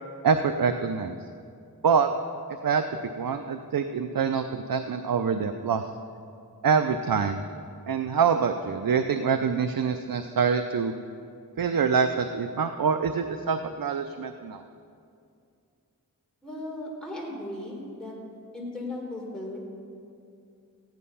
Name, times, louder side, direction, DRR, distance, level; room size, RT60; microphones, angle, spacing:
voice 1, 0.2-1.2 1.8-2.1 2.6-2.8 3.2-5.8 6.6-7.4 7.9-10.9 11.6-14.6, right 6 dB, 70° right, 8 dB, 0.6 m, -25 dB
voice 2, 16.4-18.2 18.5-19.6, left 1 dB, ahead, -4 dB, 4.1 m, -36 dB
14.5 x 10.5 x 5.5 m, 2.5 s
wide cardioid pair, 55°, 36 cm